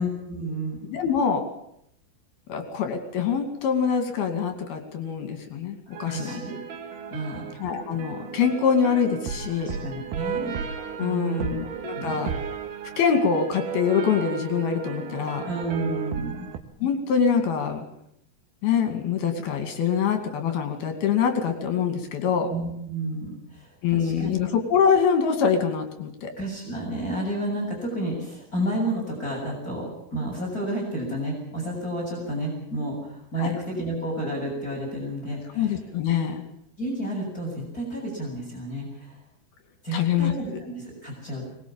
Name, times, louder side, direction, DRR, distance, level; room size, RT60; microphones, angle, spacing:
voice 1, 0.0-0.8 6.1-6.6 7.1-7.6 9.6-10.5 11.0-11.5 11.9-12.2 15.4-16.5 22.5-24.3 26.4-35.8 36.8-39.1 39.8-41.4, right 1 dB, 20° left, -2 dB, 7.6 m, -31 dB
voice 2, 0.9-1.4 2.5-6.4 7.6-9.8 11.0-12.3 13.0-15.4 16.8-17.8 18.6-22.5 23.8-26.3 33.4-33.5 35.6-36.4 39.9-40.3, left 7 dB, 75° left, 6 dB, 4.4 m, -24 dB
sound 1, 5.9-16.6, right 7 dB, 65° right, 3.0 m, -34 dB
23.5 x 20.5 x 7.2 m, 0.73 s
omnidirectional pair, 4.5 m